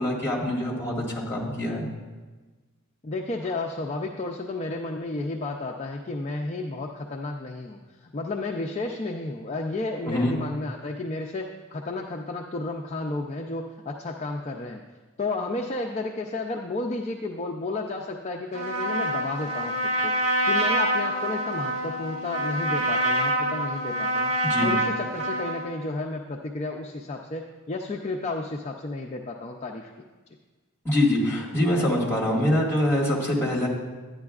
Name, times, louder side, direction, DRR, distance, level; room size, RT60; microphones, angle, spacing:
voice 1, 0.0-1.9 10.0-10.3 24.4-24.7 30.8-33.7, left 1 dB, 10° left, -5 dB, 1.7 m, -24 dB
voice 2, 3.0-14.8 15.2-20.2 20.5-24.3 24.6-29.9, left 2 dB, 30° left, 1 dB, 0.4 m, -32 dB
Trumpet, 18.5-25.7, right 1 dB, 65° right, 1.3 m, -26 dB
12.0 x 9.5 x 2.4 m, 1.3 s
head